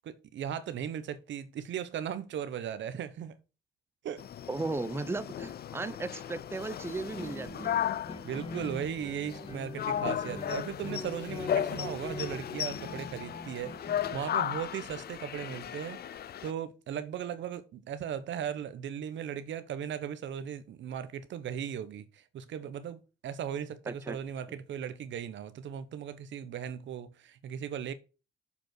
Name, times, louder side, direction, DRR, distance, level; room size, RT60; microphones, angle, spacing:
voice 1, 0.1-3.4 4.0-4.2 8.2-13.7 14.1-27.9, right 9 dB, 70° right, 1.0 m, -37 dB
sound 1, 4.2-16.5, left 10 dB, 55° left, 0.5 m, -36 dB
voice 2, 4.5-7.7 23.9-24.2, right 3 dB, 10° right, 0.7 m, -36 dB
Guitar, 7.1-14.6, left 2 dB, 30° left, 2.7 m, -43 dB
7.1 x 5.2 x 6.1 m
cardioid pair, 90°, 20 cm